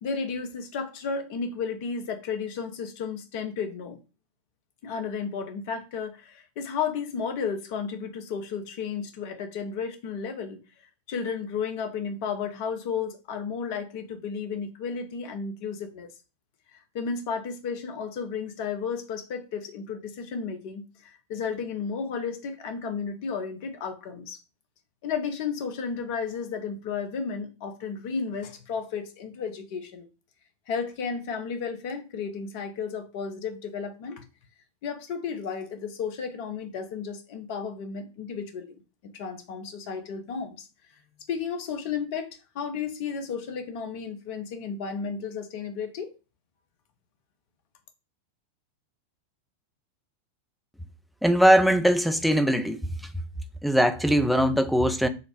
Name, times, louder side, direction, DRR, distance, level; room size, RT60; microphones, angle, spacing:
voice 1, 0.0-4.0 4.8-10.6 11.1-16.1 16.9-24.4 25.0-30.1 30.7-34.2 34.8-40.7 41.3-46.1, left 6 dB, 45° left, 0.6 m, -33 dB
voice 2, 51.2-53.1 53.6-55.1, equal, ahead, 0.4 m, -21 dB
3.8 x 2.0 x 4.3 m
figure-of-eight pair, 90°, 0 cm